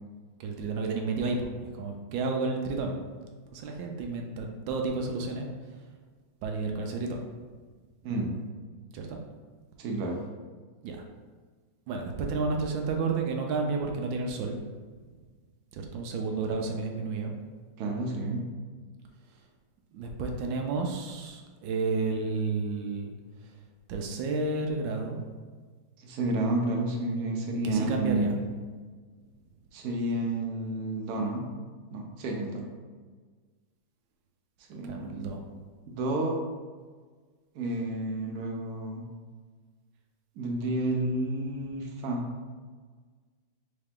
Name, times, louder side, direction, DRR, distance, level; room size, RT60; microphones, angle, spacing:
voice 1, 0.4-2.9 3.5-5.5 6.4-7.2 8.9-9.2 10.8-11.0 11.9-14.6 15.7-17.3 19.9-23.1 23.9-25.2 27.6-28.4 34.8-35.4, right 3 dB, 85° right, 2 dB, 1.3 m, -31 dB
voice 2, 9.8-10.2 17.8-18.4 26.0-28.5 29.7-31.5 31.9-32.6 34.7-35.3 35.9-36.4 37.5-39.0 40.4-42.2, right 2 dB, 65° right, 0 dB, 1.1 m, -30 dB
3.9 x 3.3 x 3.5 m, 1.5 s
omnidirectional pair, 2.0 m